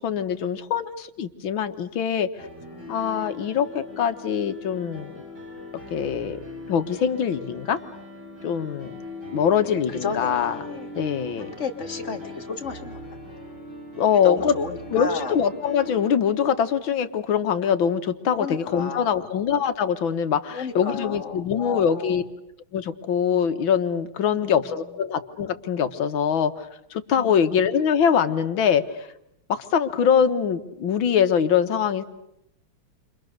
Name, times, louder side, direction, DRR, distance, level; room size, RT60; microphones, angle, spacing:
voice 1, 0.0-2.5 2.9-5.1 5.9-6.4 6.7-7.8 8.4-9.0 9.3-10.6 10.9-11.5 14.0-14.5 14.9-22.2 22.7-29.1 29.5-32.0, left 7 dB, 75° left, 10 dB, 2.0 m, -23 dB
Piano, 2.4-16.1, left 1 dB, 80° right, 8.5 m, -40 dB
voice 2, 9.7-10.9 11.4-13.0 14.2-15.3 18.3-19.3 20.5-22.2 24.2-24.7 27.1-27.6, left 5 dB, 35° left, 3 dB, 2.2 m, -33 dB
30.0 x 25.0 x 6.6 m, 0.83 s
omnidirectional pair, 2.2 m